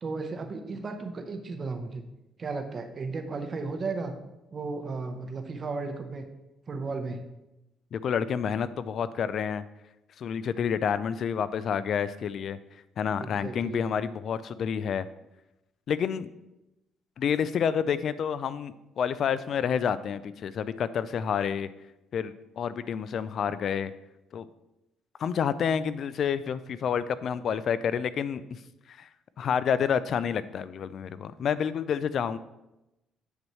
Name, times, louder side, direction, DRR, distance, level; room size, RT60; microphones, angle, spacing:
voice 1, 0.0-2.0 2.4-4.1 4.5-6.3 6.7-7.2 13.2-13.8, right 3 dB, 30° right, 6 dB, 0.7 m, -34 dB
voice 2, 7.9-9.6 10.2-12.6 13.0-15.1 15.9-16.3 17.2-21.7 22.1-23.9 24.3-24.5 25.2-28.6 28.9-29.1 29.4-32.4, left 7 dB, 45° left, 15 dB, 0.3 m, -29 dB
8.0 x 7.1 x 3.1 m, 0.93 s
cardioid pair, 175°, 0 cm